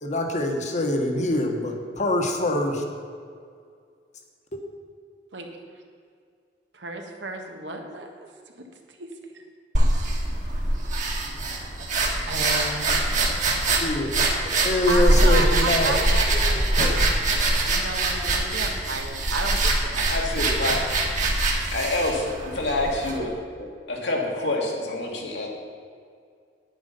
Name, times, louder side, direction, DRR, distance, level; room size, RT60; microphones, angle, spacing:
voice 1, 0.0-2.8 4.5-4.6 13.8-14.1 14.6-16.0 16.8-16.9 23.6-23.7, left 1 dB, 45° left, 3 dB, 1.4 m, -24 dB
voice 2, 6.7-8.1 8.6-8.7 9.0-9.1 9.3-9.4 12.3-13.4 14.9-17.1 17.6-20.7 22.5-23.0, right 2 dB, 80° right, 3 dB, 1.4 m, -33 dB
sound 1, 9.7-23.2, right 2 dB, 45° right, 1.7 m, -23 dB
voice 3, 20.1-20.8 21.7-23.3 23.9-25.5, left 2 dB, 75° left, -1 dB, 2.2 m, -27 dB
9.8 x 9.4 x 5.4 m, 2.2 s
head